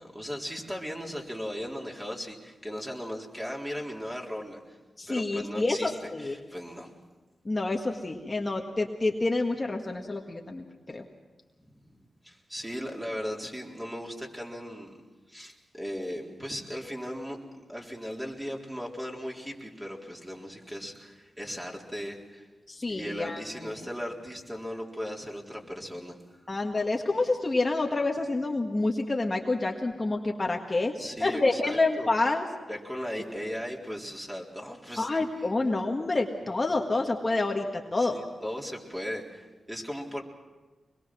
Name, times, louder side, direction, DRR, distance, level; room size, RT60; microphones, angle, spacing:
voice 1, 0.0-4.8 5.1-5.9 6.2-6.9 11.7-15.0 15.3-22.5 22.9-26.4 31.0-32.1 32.7-35.1 38.0-40.2, equal, 10° right, -1 dB, 4.0 m, -37 dB
voice 2, 5.0-6.4 7.5-11.0 22.7-23.4 23.8-23.9 26.5-30.9 31.2-32.5 35.0-38.1, left 2 dB, 30° left, 1 dB, 1.7 m, -28 dB
25.0 x 21.5 x 6.2 m, 1.2 s
cardioid pair, 70°, 0 cm